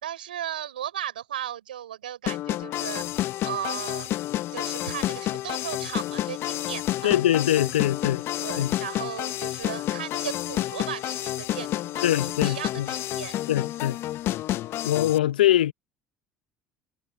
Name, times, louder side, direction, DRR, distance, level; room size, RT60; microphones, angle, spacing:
voice 1, 0.0-3.1 3.4-4.1 4.5-7.2 8.4-13.4, right 11 dB, 85° right, 4.2 m, -36 dB
sound 1, 2.3-15.2, left 14 dB, 55° left, 1.0 m, -30 dB
voice 2, 7.0-8.2 8.6-8.7 12.0-12.9 13.5-14.0 14.8-15.7, left 13 dB, 85° left, 0.9 m, -23 dB
hypercardioid pair, 65°, 5 cm